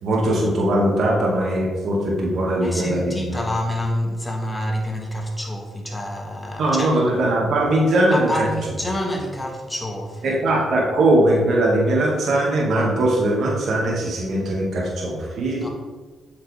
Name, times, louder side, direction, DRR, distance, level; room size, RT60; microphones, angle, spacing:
voice 1, 0.0-3.4 6.6-8.5 10.2-15.7, right 1 dB, 65° right, -3 dB, 2.3 m, -20 dB
voice 2, 2.6-7.0 8.1-10.4 15.6-15.7, left 1 dB, 15° left, 1 dB, 1.8 m, -28 dB
8.5 x 5.6 x 3.6 m, 1.4 s
supercardioid pair, 65°, 0 cm